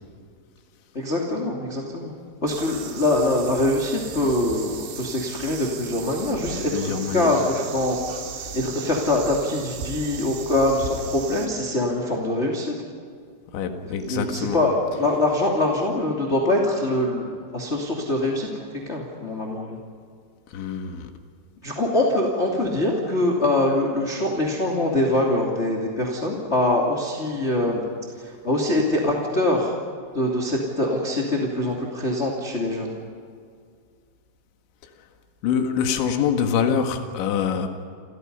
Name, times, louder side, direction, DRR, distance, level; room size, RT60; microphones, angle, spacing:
voice 1, 0.9-2.1 2.4-8.0 8.5-12.7 14.0-19.8 21.6-27.8 28.2-29.7 30.1-32.9, left 1 dB, 20° left, -1 dB, 1.9 m, -24 dB
sound 1, 2.5-11.5, right 5 dB, 70° right, 4.8 m, -37 dB
voice 2, 6.5-7.3 13.5-14.6 20.5-21.1 35.4-37.7, left 7 dB, 75° left, 5 dB, 4.0 m, -25 dB
29.5 x 28.5 x 5.5 m, 2.2 s
omnidirectional pair, 5.6 m